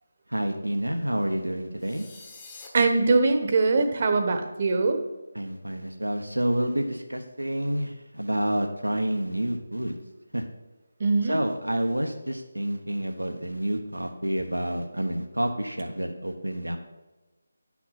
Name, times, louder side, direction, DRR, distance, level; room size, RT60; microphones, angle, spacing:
voice 1, 0.3-2.1 5.3-10.0 10.3-10.4 11.3-16.8, right 1 dB, 85° right, 4 dB, 1.0 m, -29 dB
sound 1, 1.8-2.7, left 3 dB, 15° left, 1.1 m, -46 dB
voice 2, 2.7-5.0 11.0-11.4, right 3 dB, 35° right, 7 dB, 1.0 m, -22 dB
11.0 x 6.0 x 4.1 m, 1.1 s
figure-of-eight pair, 160°, 0 cm